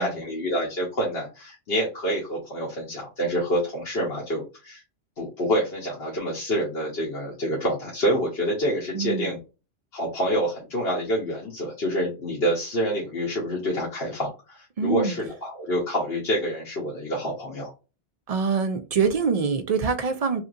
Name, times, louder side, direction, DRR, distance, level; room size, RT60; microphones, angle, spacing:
voice 1, 0.0-4.8 5.2-9.4 9.9-17.7, equal, 65° left, 1.2 m, -27 dB
voice 2, 8.9-9.4 14.8-15.2 18.3-20.4, right 5 dB, 65° right, 0.3 m, -25 dB
3.2 x 2.7 x 2.5 m
omnidirectional pair, 1.2 m